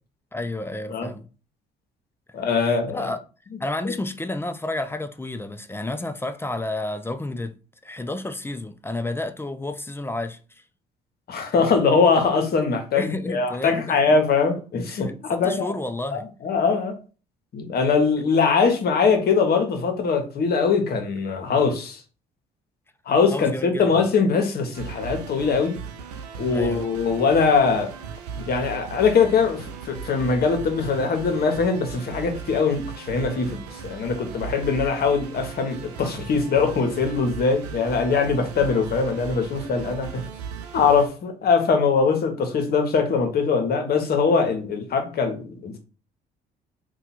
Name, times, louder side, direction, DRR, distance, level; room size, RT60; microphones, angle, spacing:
voice 1, 0.3-1.3 2.6-3.2 3.6-7.6 7.8-10.4 12.9-14.0 14.9-16.2 23.3-24.0 26.5-26.9, left 2 dB, 10° left, 0.4 m, -31 dB
voice 2, 2.3-3.1 11.3-15.8 16.1-17.0 17.5-22.0 23.1-25.8 26.4-27.9 28.5-40.2 40.7-45.8, left 5 dB, 50° left, 1.0 m, -22 dB
sound 1, 24.7-41.1, right 6 dB, 90° right, 0.4 m, -37 dB
2.8 x 2.3 x 4.2 m
hypercardioid pair, 60°, 20 cm